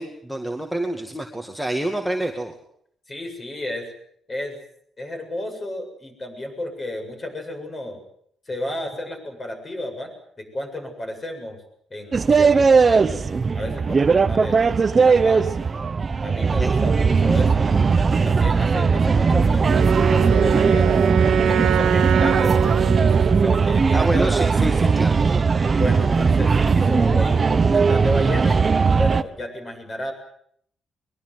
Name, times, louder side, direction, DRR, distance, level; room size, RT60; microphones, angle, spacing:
voice 1, 0.0-2.6 16.6-16.7 23.9-25.4, right 1 dB, ahead, 4 dB, 2.2 m, -28 dB
voice 2, 3.1-3.9 4.3-4.6 5.0-8.0 8.5-10.1 10.4-11.6 11.9-13.2 13.5-14.6 15.0-15.6 16.2-21.0 21.3-24.3 25.8-30.1, left 1 dB, 30° left, 5 dB, 7.6 m, -32 dB
sound 1, 12.1-29.2, right 5 dB, 30° right, 0.9 m, -18 dB
Wind instrument woodwind instrument, 19.7-23.7, right 9 dB, 85° right, 2.1 m, -23 dB
23.0 x 22.0 x 8.0 m, 0.67 s
cardioid pair, 130°, 0 cm